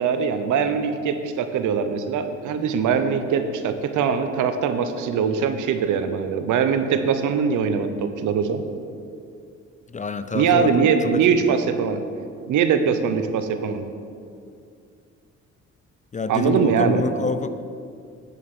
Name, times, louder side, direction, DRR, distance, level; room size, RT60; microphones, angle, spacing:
voice 1, 0.0-8.6 10.3-12.0 12.5-13.8 16.3-17.0, right 6 dB, 80° right, 9 dB, 1.0 m, -22 dB
voice 2, 9.9-11.5 16.1-17.5, left 4 dB, 25° left, 12 dB, 0.5 m, -27 dB
10.0 x 7.3 x 6.3 m, 2.4 s
cardioid pair, 90°, 30 cm